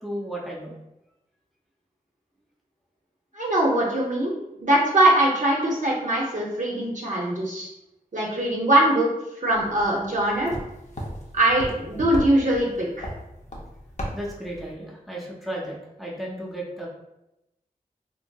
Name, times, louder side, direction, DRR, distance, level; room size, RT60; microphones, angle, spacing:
voice 1, 0.0-0.8 14.1-16.9, right 1 dB, ahead, -4 dB, 0.7 m, -34 dB
voice 2, 3.3-4.3 4.6-7.7 8.1-9.1 9.4-10.5 11.3-13.1, right 1 dB, 55° right, -4 dB, 0.6 m, -22 dB
sound 1, 9.5-14.7, equal, 50° left, 0.6 m, -37 dB
2.8 x 2.6 x 2.2 m, 0.91 s
cardioid pair, 45°, 15 cm